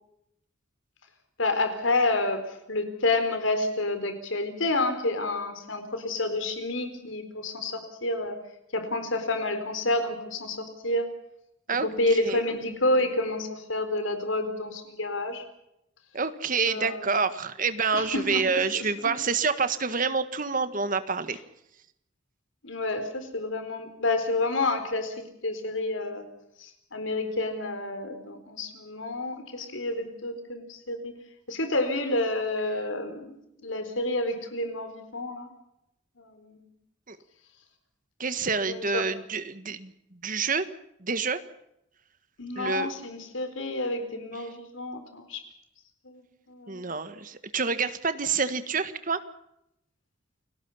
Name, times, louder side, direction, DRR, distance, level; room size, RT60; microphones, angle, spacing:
voice 1, 1.4-8.5 8.7-11.1 11.7-15.4 16.7-17.0 17.9-18.9 22.6-26.2 26.6-31.1 31.5-35.5 36.2-36.6 38.7-39.0 42.4-45.4 46.0-46.2 46.5-46.9, left 2 dB, 80° left, 8 dB, 4.3 m, -29 dB
voice 2, 16.1-21.4 37.1-37.2 38.2-40.6 41.0-41.4 42.5-42.9 46.7-49.2, right 5 dB, 45° right, 11 dB, 1.6 m, -28 dB
29.5 x 18.5 x 5.7 m, 0.80 s
head